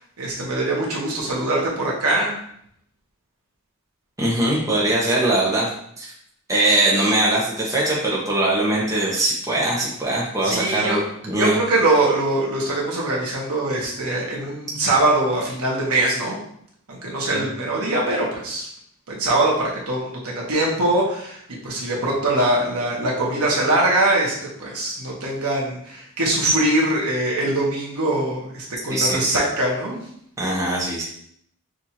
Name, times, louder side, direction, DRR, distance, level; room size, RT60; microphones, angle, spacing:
voice 1, 0.2-2.3 10.4-11.0 11.3-16.4 16.9-18.7 19.1-30.0, right 2 dB, 75° right, -4 dB, 1.3 m, -22 dB
voice 2, 4.2-5.7 6.0-6.1 6.5-11.6 17.3-17.5 28.9-29.2 30.4-31.0, right 1 dB, 15° right, -4 dB, 0.8 m, -21 dB
6.2 x 2.6 x 2.9 m, 0.69 s
head